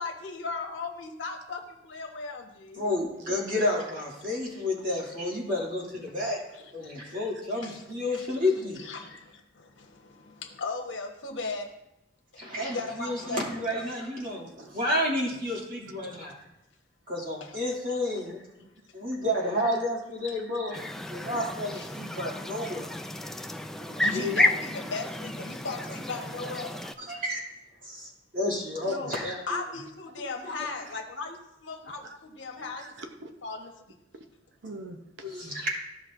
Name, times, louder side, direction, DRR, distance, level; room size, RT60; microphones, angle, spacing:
voice 1, 0.0-3.1 6.3-6.6 7.6-7.9 8.1-8.3 8.8-11.8 12.7-13.4 13.7-13.9 17.4-17.6 18.6-18.7 21.7-21.8 23.9-26.8 28.8-29.2 29.5-32.9 33.4-33.7, left 3 dB, 70° left, 2 dB, 1.3 m, -37 dB
voice 2, 2.8-6.4 6.7-8.8 12.4-14.5 14.7-16.3 17.1-18.4 18.9-20.8 21.1-22.9 23.8-24.4 27.1-27.4 27.8-29.4 30.6-30.7 35.2-35.7, left 1 dB, 45° right, -4 dB, 2.5 m, -30 dB
voice 3, 14.2-14.7 31.8-32.2 32.6-33.3 34.6-35.3, right 2 dB, 70° right, 5 dB, 0.7 m, -45 dB
sound 1, 20.7-26.9, left 1 dB, ahead, 0.3 m, -31 dB
14.0 x 6.1 x 2.6 m, 0.88 s
head